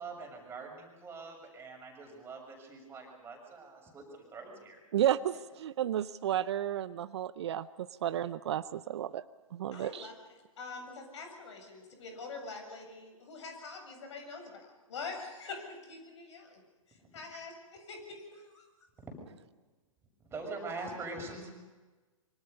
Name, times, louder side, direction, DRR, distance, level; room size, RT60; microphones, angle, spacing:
voice 1, 0.0-4.8 20.3-21.5, right 3 dB, 15° right, 1 dB, 6.7 m, -43 dB
voice 2, 4.9-7.7 8.0-9.2 9.5-10.1, right 11 dB, 50° right, 15 dB, 0.7 m, -32 dB
voice 3, 9.7-10.1 10.6-16.6 16.9-18.7, left 4 dB, 55° left, 4 dB, 7.7 m, -45 dB
26.0 x 24.5 x 5.4 m, 1.2 s
figure-of-eight pair, 120°, 18 cm